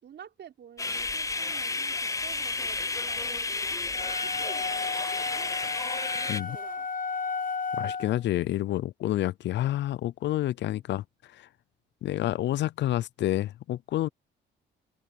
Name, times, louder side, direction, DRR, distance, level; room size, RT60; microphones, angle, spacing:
voice 1, 0.0-2.8 3.0-3.6 3.9-5.5 6.1-6.9 10.7-10.8, right 9 dB, 60° right, 4.5 m, -49 dB
sound 1, 0.8-6.4, left 3 dB, 15° left, 0.6 m, -31 dB
sound 2, 3.9-8.2, left 5 dB, 45° left, 1.2 m, -34 dB
voice 2, 7.8-11.5 12.0-14.1, left 14 dB, 65° left, 0.4 m, -29 dB
cardioid pair, 90°, 20 cm